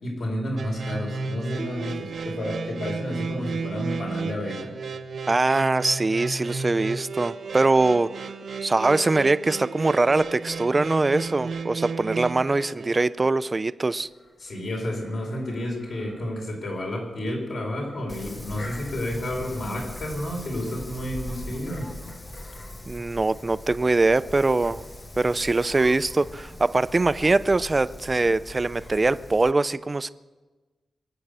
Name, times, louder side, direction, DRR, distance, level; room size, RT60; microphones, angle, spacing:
voice 1, 0.0-4.7 14.4-21.9, left 1 dB, 60° left, 0 dB, 4.7 m, -31 dB
sound 1, 0.6-13.1, right 4 dB, 60° right, 0.9 m, -33 dB
voice 2, 5.3-8.1 8.6-14.1 22.9-24.8 25.2-30.1, right 3 dB, 25° right, 15 dB, 0.4 m, -22 dB
sound 2, 14.0-26.4, left 1 dB, 75° left, 5.8 m, -51 dB
Wind, 18.1-29.5, left 1 dB, 20° left, 0.8 m, -40 dB
22.5 x 8.7 x 6.7 m, 1.3 s
wide cardioid pair, 130°, 0 cm